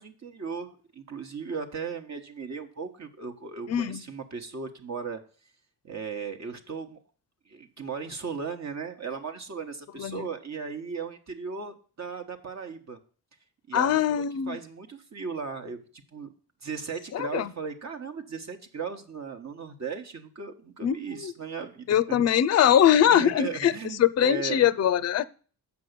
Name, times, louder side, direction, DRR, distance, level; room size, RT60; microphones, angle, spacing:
voice 1, 0.0-5.2 5.8-7.0 7.5-13.0 13.7-16.3 16.6-22.2 23.1-24.7, right 5 dB, 45° right, 5 dB, 1.1 m, -37 dB
voice 2, 3.7-4.0 10.0-10.3 13.7-14.6 17.1-17.5 20.8-21.3 21.9-23.7 24.0-25.2, left 10 dB, 45° left, 18 dB, 0.5 m, -22 dB
7.0 x 5.3 x 6.6 m, 0.41 s
cardioid pair, 75°, 37 cm